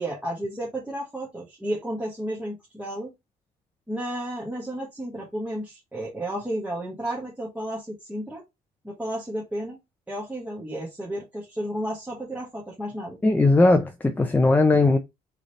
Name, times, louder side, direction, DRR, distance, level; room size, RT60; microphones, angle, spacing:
voice 1, 0.0-3.1 3.9-8.4 8.8-9.8 10.1-13.2, right 1 dB, 10° right, 1.5 m, -32 dB
voice 2, 13.2-15.0, left 2 dB, 10° left, 0.6 m, -18 dB
3.8 x 3.4 x 4.0 m
cardioid pair, 110°, 17 cm